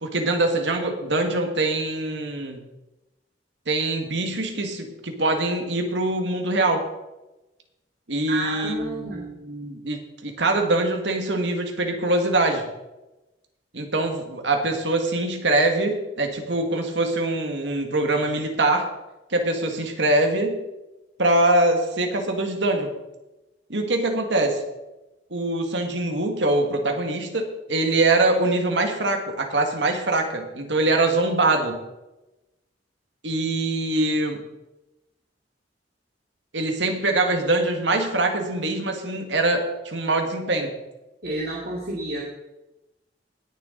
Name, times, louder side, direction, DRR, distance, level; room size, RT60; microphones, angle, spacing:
voice 1, 0.0-2.6 3.7-6.8 8.1-12.6 13.7-18.9 19.3-20.6 21.2-22.9 23.7-24.6 25.3-31.8 33.2-34.4 36.5-40.7, right 2 dB, 90° right, 3 dB, 1.9 m, -23 dB
voice 2, 8.3-9.3 41.2-42.2, right 2 dB, 55° right, -3 dB, 2.0 m, -30 dB
19.0 x 7.1 x 3.9 m, 0.99 s
head